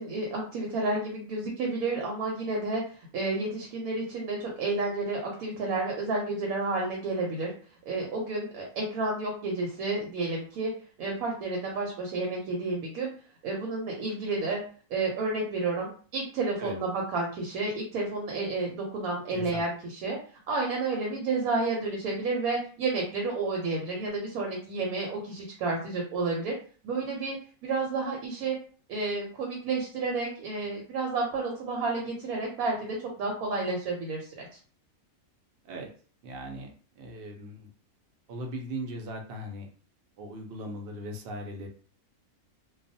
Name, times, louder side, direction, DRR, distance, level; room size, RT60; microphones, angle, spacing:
voice 1, 0.0-7.5 7.9-10.7 11.0-13.1 13.4-14.6 14.9-20.2 20.5-26.5 26.8-28.6 28.9-34.6, right 3 dB, 80° right, -1 dB, 1.1 m, -31 dB
voice 2, 19.3-19.6 35.6-35.9 36.2-37.7 38.3-39.7 40.2-41.7, right 1 dB, 60° right, 2 dB, 0.6 m, -38 dB
2.3 x 2.3 x 2.6 m, 0.42 s
omnidirectional pair, 1.5 m